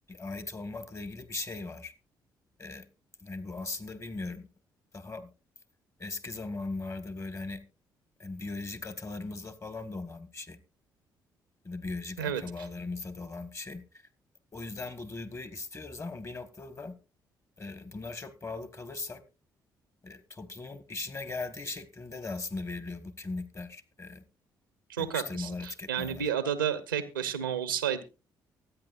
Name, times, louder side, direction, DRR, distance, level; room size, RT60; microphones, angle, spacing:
voice 1, 0.1-1.9 2.6-2.9 3.2-4.5 4.9-5.3 6.0-7.6 8.2-10.6 11.6-13.8 14.5-16.9 17.6-19.2 20.0-24.2 25.0-26.3, left 3 dB, 25° left, 1.5 m, -39 dB
voice 2, 12.2-12.7 24.9-28.0, right 8 dB, 80° right, 1.0 m, -31 dB
24.0 x 9.3 x 2.5 m
figure-of-eight pair, 40°, 11 cm